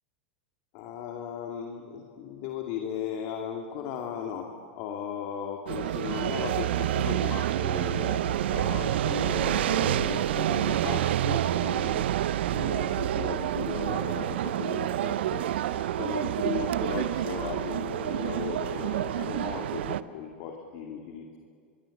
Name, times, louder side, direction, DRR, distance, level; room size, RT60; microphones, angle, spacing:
voice 1, 0.7-12.1 12.5-15.5 16.0-21.4, left 8 dB, 50° left, 2 dB, 2.3 m, -36 dB
sound 1, 5.7-20.0, right 12 dB, 70° right, 0.7 m, -28 dB
24.5 x 23.0 x 7.2 m, 2.2 s
hypercardioid pair, 100°, 6 cm